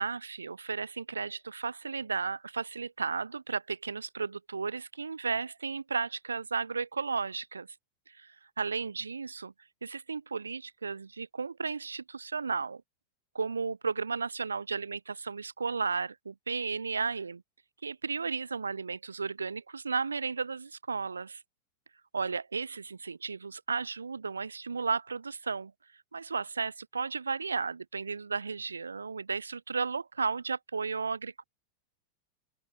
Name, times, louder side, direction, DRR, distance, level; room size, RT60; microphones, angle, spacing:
voice 1, 0.0-7.7 8.6-9.5 9.8-12.8 13.3-17.4 17.8-21.4 22.1-25.7 26.1-31.4, right 5 dB, 75° right, 2.7 m, -34 dB
open air
figure-of-eight pair, 90°, 0 cm